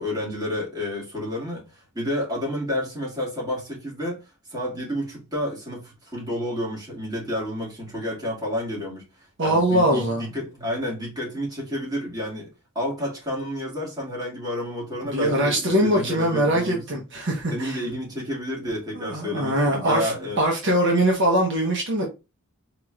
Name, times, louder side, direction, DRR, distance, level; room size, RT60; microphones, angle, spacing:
voice 1, 0.0-4.2 4.5-9.1 9.4-17.0 17.5-20.4, left 1 dB, 20° right, 2.1 m, -30 dB
voice 2, 9.4-10.2 15.1-17.8 18.9-22.0, right 1 dB, 55° right, 1.0 m, -22 dB
4.8 x 3.0 x 2.4 m
head